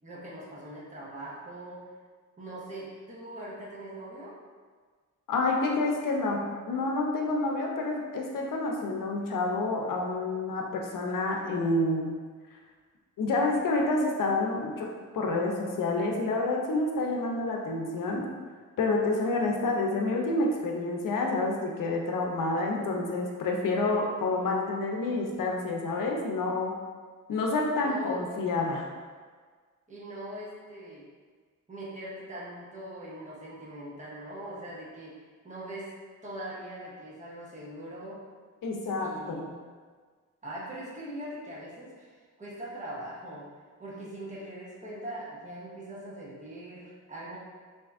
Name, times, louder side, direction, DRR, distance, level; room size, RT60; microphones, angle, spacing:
voice 1, 0.0-1.9 2.4-4.4 27.8-28.2 29.9-31.1 31.7-35.2 35.4-35.9 36.2-38.2 39.0-39.5 40.4-43.5 43.8-47.4, right 1 dB, 20° right, -7 dB, 1.0 m, -41 dB
voice 2, 5.3-12.2 13.2-18.3 18.8-26.7 27.3-28.9 38.6-39.5, left 2 dB, 75° left, 1 dB, 0.7 m, -28 dB
3.5 x 2.7 x 3.5 m, 1.5 s
cardioid pair, 105°, 33 cm